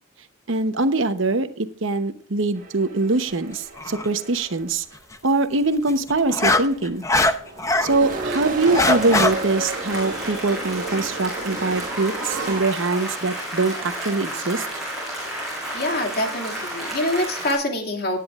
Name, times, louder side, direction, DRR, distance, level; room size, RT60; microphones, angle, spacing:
voice 1, 0.5-4.8 5.2-7.0 7.8-14.7, right 3 dB, 65° right, 10 dB, 0.9 m, -23 dB
sound 1, 2.6-4.8 5.7-5.8 6.1-12.6, right 2 dB, 40° right, 1.7 m, -33 dB
sound 2, 3.8-4.1 5.9-7.9 8.4-9.3, left 2 dB, 15° left, 0.7 m, -20 dB
Applause, 7.8-17.5, right 1 dB, ahead, 6.3 m, -32 dB
voice 2, 15.7-18.2, left 1 dB, 45° left, 2 dB, 2.4 m, -25 dB
18.0 x 10.0 x 2.5 m, 0.43 s
head